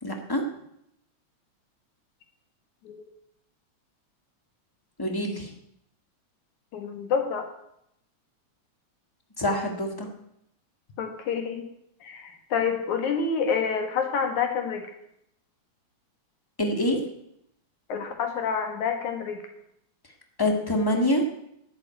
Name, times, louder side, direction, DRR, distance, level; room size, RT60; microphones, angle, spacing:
voice 1, 0.0-0.4 5.0-5.5 9.4-10.1 16.6-17.0 20.4-21.2, left 1 dB, 15° left, 3 dB, 0.9 m, -25 dB
voice 2, 6.7-7.5 11.0-11.7 12.0-14.9 17.9-19.4, left 6 dB, 75° left, 5 dB, 2.9 m, -28 dB
11.5 x 8.2 x 9.2 m, 0.77 s
omnidirectional pair, 3.4 m